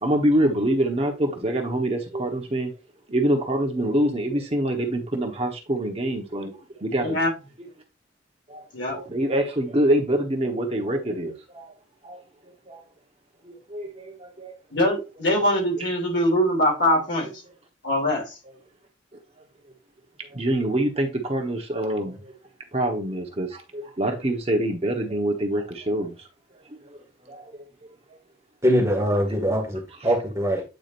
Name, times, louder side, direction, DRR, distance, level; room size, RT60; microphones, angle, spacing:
voice 1, 0.0-2.7 3.1-7.2 8.5-8.6 8.9-11.7 12.0-12.2 12.7-12.8 13.4-14.5 15.8-15.9 20.3-22.3 22.7-26.3 26.9-27.0 27.2-27.6 30.0-30.2, right 1 dB, 30° right, 1.2 m, -25 dB
voice 2, 7.0-7.3 8.7-9.0 14.7-17.3 17.8-18.4, left 1 dB, 65° left, 2.7 m, -22 dB
voice 3, 28.6-30.6, equal, 15° right, 1.9 m, -22 dB
9.0 x 4.9 x 2.6 m
head